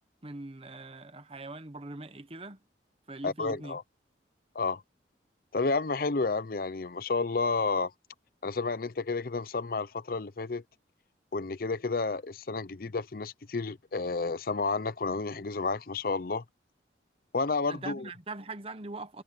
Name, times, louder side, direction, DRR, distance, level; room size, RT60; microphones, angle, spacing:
voice 1, 0.2-2.6 3.1-3.8 17.7-19.2, right 2 dB, 30° right, 1.1 m, -41 dB
voice 2, 3.2-3.8 4.5-4.8 5.5-7.9 8.4-10.6 11.3-16.4 17.3-18.0, left 4 dB, 50° left, 0.6 m, -31 dB
head